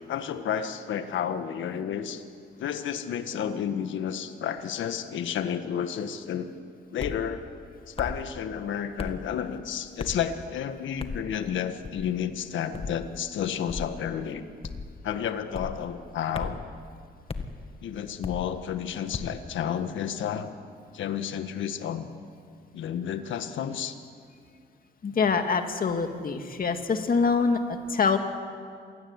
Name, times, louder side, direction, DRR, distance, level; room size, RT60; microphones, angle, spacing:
voice 1, 0.1-2.2 2.6-6.5 6.9-7.4 7.9-14.4 15.0-16.6 17.8-20.5 20.9-22.1 22.7-23.9, left 8 dB, 75° left, 8 dB, 1.7 m, -31 dB
sound 1, 7.0-7.2 8.0-8.2 9.0-9.2 10.0-10.3 11.0-11.3 11.8-12.1 12.7-13.0 13.7-14.0 14.6-15.0 15.5-15.8 16.3-16.7 17.3-17.5 18.2-18.5 19.1-19.4, left 4 dB, 30° left, 1.9 m, -35 dB
voice 2, 25.0-28.2, left 5 dB, 45° left, 6 dB, 2.3 m, -25 dB
26.5 x 17.5 x 9.8 m, 2.2 s
cardioid pair, 90°, 20 cm